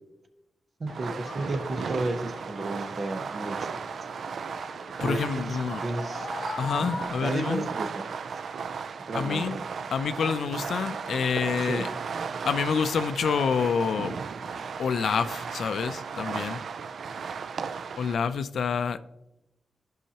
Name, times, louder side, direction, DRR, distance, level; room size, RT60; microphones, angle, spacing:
voice 1, 0.8-3.7 5.0-6.3 6.8-8.0 9.1-9.6 11.7-11.9, right 2 dB, 55° right, 0.9 m, -33 dB
sound 1, 0.9-7.1, left 4 dB, 55° left, 0.8 m, -42 dB
Fireworks, 0.9-18.1, right 6 dB, 75° right, 0.3 m, -35 dB
voice 2, 5.0-5.8 6.6-7.7 9.1-9.6 9.9-11.9 12.4-16.6 18.0-19.0, left 6 dB, 80° left, 0.4 m, -28 dB
15.0 x 5.5 x 2.8 m
cardioid pair, 70°, 0 cm